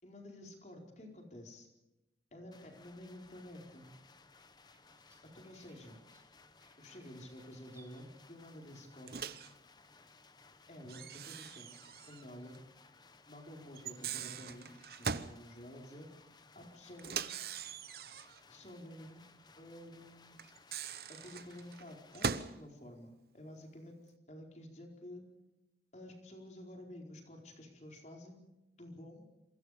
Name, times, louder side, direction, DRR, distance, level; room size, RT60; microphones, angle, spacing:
voice 1, 0.0-1.7 2.3-3.9 5.3-6.0 6.8-9.4 10.7-11.8 12.1-12.6 13.3-14.7 15.0-16.1 16.5-17.4 18.5-19.2 19.6-20.3 21.1-24.0 24.3-25.2 25.9-28.4 28.7-29.3, left 1 dB, 40° left, 2 dB, 4.6 m, -51 dB
sound 1, 2.5-22.4, left 4 dB, 25° left, 1.0 m, -62 dB
sound 2, 2.6-7.9, right 3 dB, 15° right, 2.7 m, -70 dB
Microwave oven, 9.1-9.5 10.9-12.3 12.5-12.6 13.8-15.4 17.0-18.4 20.4-22.6, right 6 dB, 60° right, 0.9 m, -41 dB
27.0 x 24.0 x 5.1 m, 0.97 s
head